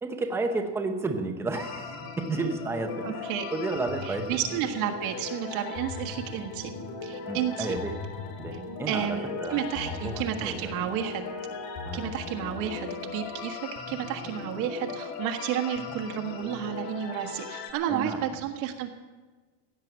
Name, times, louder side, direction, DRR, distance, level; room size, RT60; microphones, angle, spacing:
voice 1, 0.0-4.4 7.3-8.0 8.4-10.8 11.8-12.1 17.9-18.4, right 3 dB, 5° right, 5 dB, 0.6 m, -32 dB
sound 1, 1.5-17.7, left 4 dB, 45° left, 2.4 m, -38 dB
voice 2, 3.0-3.4 4.0-6.7 7.0-7.7 8.5-8.6 8.9-11.2 11.9-18.9, right 9 dB, 60° right, 3 dB, 1.5 m, -31 dB
16.5 x 7.6 x 9.0 m, 1.3 s
cardioid pair, 175°, 47 cm